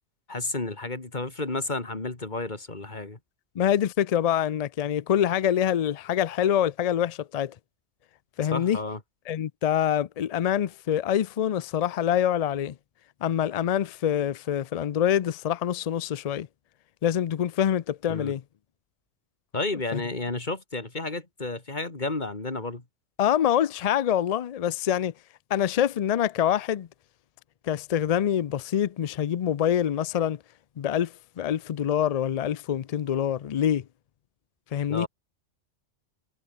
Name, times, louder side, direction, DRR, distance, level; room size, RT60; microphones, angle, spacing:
voice 1, 0.3-3.2 8.5-9.0 18.1-18.3 19.5-22.8 34.9-35.1, left 2 dB, 40° left, 2.7 m, -31 dB
voice 2, 3.6-7.5 8.4-8.8 9.3-12.7 13.2-16.5 17.0-18.4 19.9-20.0 23.2-25.1 25.5-26.9 27.6-30.4 30.8-33.8 34.7-35.1, left 10 dB, 65° left, 0.3 m, -25 dB
omnidirectional pair, 1.2 m